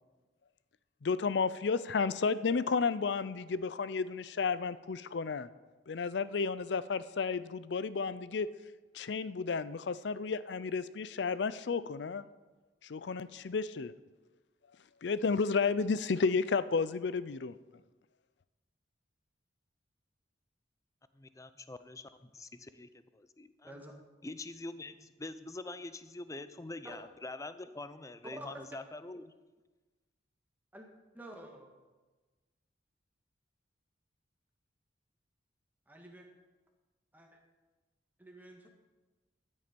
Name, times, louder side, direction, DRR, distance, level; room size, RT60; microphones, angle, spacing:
voice 1, 1.0-5.5 5.9-8.5 8.9-12.2 12.8-13.9 15.0-17.6, left 5 dB, 65° left, 16 dB, 0.5 m, -32 dB
voice 2, 21.2-23.7 24.2-29.3, left 2 dB, 15° left, 12 dB, 0.5 m, -45 dB
voice 3, 28.3-28.7 30.7-30.9 31.1-31.7 35.9-36.3 37.1-37.4 38.2-38.7, right 1 dB, 10° right, 1 dB, 1.7 m, -49 dB
13.0 x 9.8 x 5.3 m, 1.2 s
head